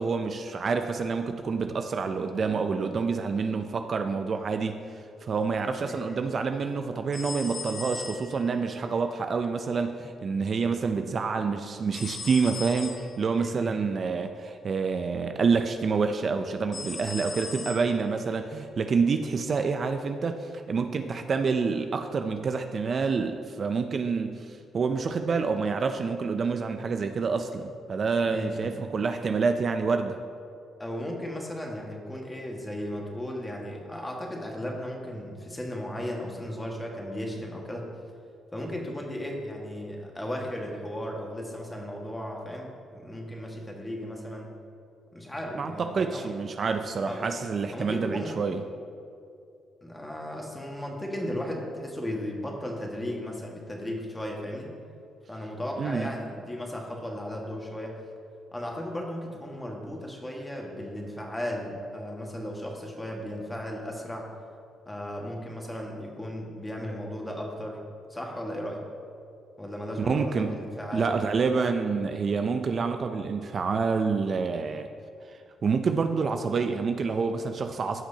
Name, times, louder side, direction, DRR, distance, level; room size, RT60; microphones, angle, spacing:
voice 1, 0.0-4.8 5.2-30.2 45.6-48.6 55.8-56.1 70.0-70.6 70.9-74.9 75.6-78.0, right 5 dB, 45° right, 7 dB, 0.4 m, -27 dB
voice 2, 5.8-6.2 13.4-13.8 28.3-28.7 30.8-37.9 38.5-44.5 45.1-46.3 47.1-47.3 47.7-48.4 49.8-54.7 55.3-58.0 58.5-64.3 64.8-67.8 68.1-68.8 69.6-71.1, left 1 dB, 10° left, 0 dB, 1.6 m, -36 dB
sound 1, 7.1-8.7 11.9-13.2 16.7-18.1, left 4 dB, 50° left, 1.3 m, -38 dB
15.5 x 6.0 x 2.8 m, 2.4 s
cardioid pair, 90°, 0 cm